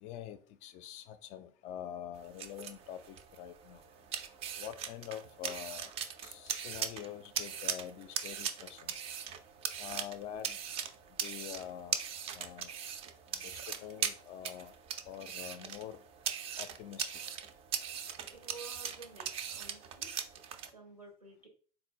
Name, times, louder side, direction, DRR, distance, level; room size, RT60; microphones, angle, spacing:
voice 1, 0.0-3.8 4.6-5.9 6.2-8.9 9.8-10.6 11.2-12.0 12.3-12.7 13.4-14.7 15.1-16.0 16.6-17.1, left 10 dB, 40° left, 0.3 m, -45 dB
sound 1, 2.1-20.7, right 8 dB, 30° right, 0.4 m, -40 dB
voice 2, 18.3-20.1 20.6-21.5, right 4 dB, 90° right, 0.8 m, -52 dB
3.9 x 2.0 x 3.6 m
figure-of-eight pair, 75°, 19 cm